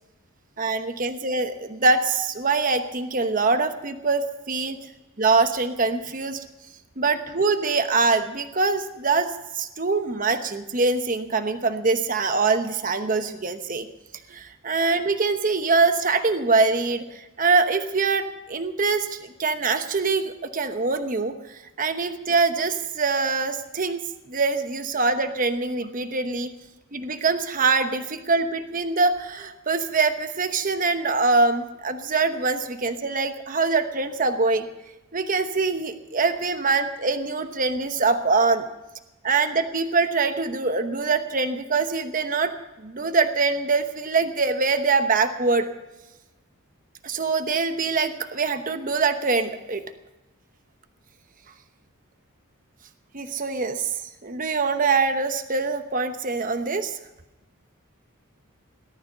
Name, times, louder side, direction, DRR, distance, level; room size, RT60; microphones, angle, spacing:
voice 1, 0.6-4.8 5.2-6.4 7.0-13.9 14.3-24.0 24.3-26.5 26.9-34.7 35.1-38.7 39.2-42.5 42.8-45.7 47.0-49.8 53.1-57.0, right 4 dB, 40° right, 8 dB, 1.0 m, -24 dB
18.5 x 12.5 x 5.6 m, 1.0 s
head